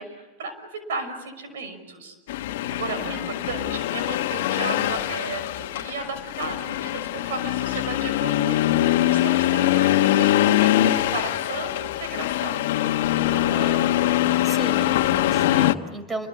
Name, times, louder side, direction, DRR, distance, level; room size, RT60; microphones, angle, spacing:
voice 1, 0.0-2.1 2.5-8.6 9.1-12.7, right 4 dB, 90° right, 9 dB, 6.1 m, -34 dB
Accelerating revving vroom, 2.3-15.8, left 13 dB, 80° left, 1.3 m, -23 dB
voice 2, 3.0-3.3 13.2-14.0 14.4-16.3, right 2 dB, 20° right, 11 dB, 5.4 m, -35 dB
30.0 x 22.5 x 8.6 m, 1.2 s
supercardioid pair, 110°, 0 cm